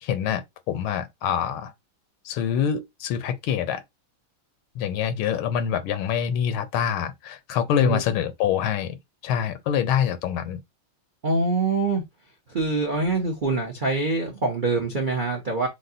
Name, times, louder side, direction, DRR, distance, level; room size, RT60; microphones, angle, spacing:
voice 1, 0.0-1.7 2.2-3.8 4.7-9.0 9.2-10.6, left 8 dB, 90° left, 1.6 m, -25 dB
voice 2, 11.2-12.0 12.5-15.7, right 3 dB, 65° right, 0.4 m, -24 dB
6.4 x 2.2 x 2.7 m
omnidirectional pair, 2.3 m